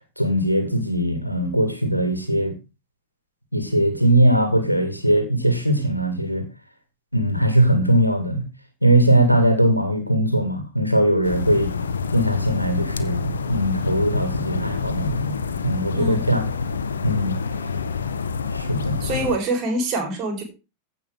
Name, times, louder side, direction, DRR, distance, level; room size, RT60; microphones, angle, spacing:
voice 1, 0.2-2.5 3.5-6.4 7.1-8.5 8.8-11.7 12.1-15.3 15.6-16.5 17.0-17.4 18.5-19.0, right 1 dB, 90° left, 2.0 m, -20 dB
sound 1, 11.2-19.4, left 5 dB, 70° left, 0.9 m, -27 dB
voice 2, 19.0-20.4, right 2 dB, 35° right, 4.1 m, -25 dB
15.5 x 5.7 x 3.7 m
figure-of-eight pair, 90°, 0 cm